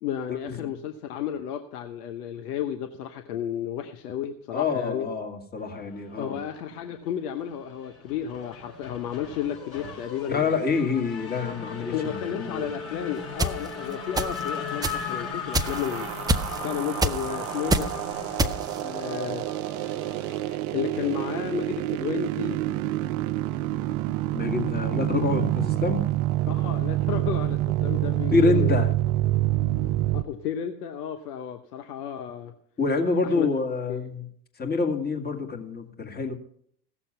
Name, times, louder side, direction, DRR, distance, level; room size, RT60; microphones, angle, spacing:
voice 1, 0.0-5.1 6.2-10.7 11.9-16.1 16.6-17.9 18.8-19.5 20.7-22.6 25.1-25.2 26.5-28.8 30.1-32.5 33.2-33.5 33.9-34.0, left 9 dB, 70° left, 7 dB, 1.1 m, -32 dB
voice 2, 4.5-6.4 10.3-11.9 12.3-12.6 24.3-26.0 28.3-28.9 32.8-34.3 34.6-36.3, left 4 dB, 20° left, 2 dB, 2.1 m, -26 dB
Race car auto racing / Accelerating revving vroom, 6.0-7.0 7.3-21.0, left 5 dB, 55° left, 5.5 m, -38 dB
sound 1, 13.4-13.5 14.2-14.5 14.8-15.0 15.5-15.9 16.3-16.6 17.0-17.3 17.7-17.9 18.4-18.8, right 2 dB, 10° right, 0.4 m, -24 dB
sound 2, 15.6-30.2, right 15 dB, 55° right, 0.6 m, -27 dB
16.5 x 7.1 x 5.6 m, 0.65 s
hypercardioid pair, 90°, 48 cm